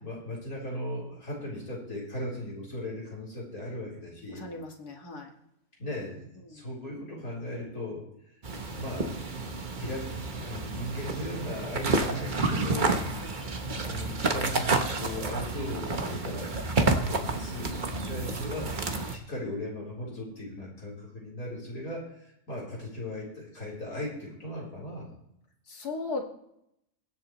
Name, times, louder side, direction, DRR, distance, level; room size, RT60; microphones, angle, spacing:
voice 1, 0.0-4.5 5.8-6.2 6.5-8.1 8.7-9.2 9.8-12.9 13.7-16.6 16.9-22.1 22.5-25.1, left 1 dB, 65° left, -4 dB, 4.6 m, -37 dB
voice 2, 4.3-5.3 6.5-6.6 13.1-13.3 17.9-18.5 18.9-19.1 25.7-26.2, left 3 dB, 85° left, 0 dB, 2.4 m, -38 dB
sound 1, 8.4-19.2, right 3 dB, 35° right, 1.1 m, -30 dB
22.5 x 7.8 x 3.1 m, 0.76 s
omnidirectional pair, 1.6 m